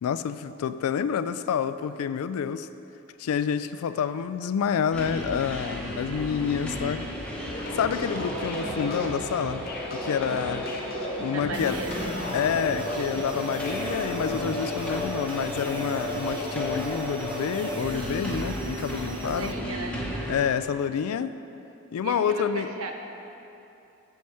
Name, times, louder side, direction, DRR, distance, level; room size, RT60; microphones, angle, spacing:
voice 1, 0.0-2.7 3.2-7.1 7.7-9.7 9.9-10.7 11.2-11.8 12.3-19.5 20.3-21.4 21.9-22.7, left 7 dB, 75° left, 14 dB, 0.3 m, -28 dB
sound 1, 4.9-20.4, equal, 5° left, 0.9 m, -33 dB
sound 2, 7.4-15.0, left 2 dB, 40° left, 0.8 m, -37 dB
voice 2, 11.3-12.0 19.2-20.0 22.0-22.9, right 3 dB, 65° right, 3 dB, 0.8 m, -35 dB
sound 3, 11.5-19.5, right 4 dB, 20° right, 0.4 m, -44 dB
7.5 x 7.0 x 4.7 m, 2.8 s
head